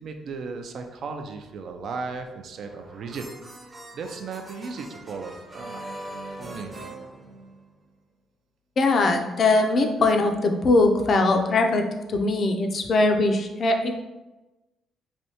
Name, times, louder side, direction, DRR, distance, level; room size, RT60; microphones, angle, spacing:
voice 1, 0.0-6.7, right 4 dB, 65° right, 5 dB, 0.4 m, -36 dB
sound 1, 2.5-7.9, right 1 dB, 25° right, 0.6 m, -41 dB
voice 2, 8.8-11.8 12.1-13.9, left 2 dB, 50° left, 4 dB, 0.4 m, -21 dB
3.2 x 2.6 x 2.8 m, 1.1 s
cardioid pair, 90°, 0 cm